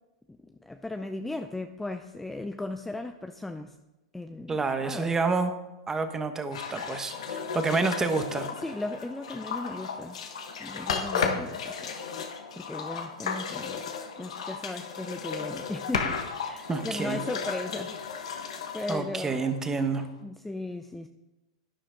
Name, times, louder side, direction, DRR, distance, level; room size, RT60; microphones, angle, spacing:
voice 1, 0.4-3.8 4.1-5.1 8.6-10.2 10.6-11.9 12.6-13.8 14.2-18.0 18.7-19.4 20.2-21.1, left 2 dB, 5° left, 7 dB, 0.5 m, -37 dB
voice 2, 4.5-5.5 5.9-8.5 16.7-17.2 18.9-20.1, right 4 dB, 15° right, 8 dB, 1.2 m, -28 dB
sound 1, 6.5-20.0, left 6 dB, 75° left, 1.4 m, -34 dB
11.5 x 10.0 x 3.8 m, 1.0 s
hypercardioid pair, 115°, 3 cm